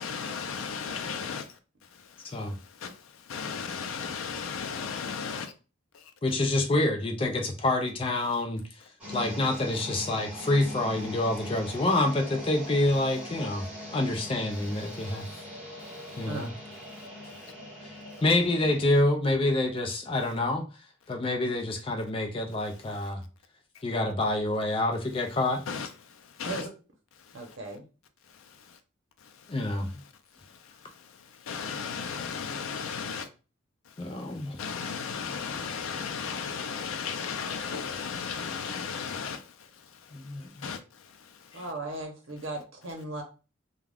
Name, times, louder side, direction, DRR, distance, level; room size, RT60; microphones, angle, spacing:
voice 1, 0.0-5.5 5.9-6.1 14.9-15.4 15.8-16.3 17.0-17.5 22.9-23.1 25.7-26.6 27.2-27.4 28.3-28.8 29.2-29.6 30.4-33.3 33.9-41.6, left 6 dB, 85° left, 0.4 m, -37 dB
voice 2, 6.2-8.6 9.1-13.6 13.9-15.3 16.2-16.5 17.8-17.9 18.2-20.7 21.1-23.2 23.8-25.6 29.5-29.9 34.0-34.6 40.1-40.7, left 2 dB, 25° left, 0.4 m, -27 dB
sound 1, 9.0-19.0, left 1 dB, 5° right, 1.2 m, -42 dB
voice 3, 27.3-27.9 41.5-43.2, right 2 dB, 70° right, 0.8 m, -37 dB
2.3 x 2.3 x 3.3 m
head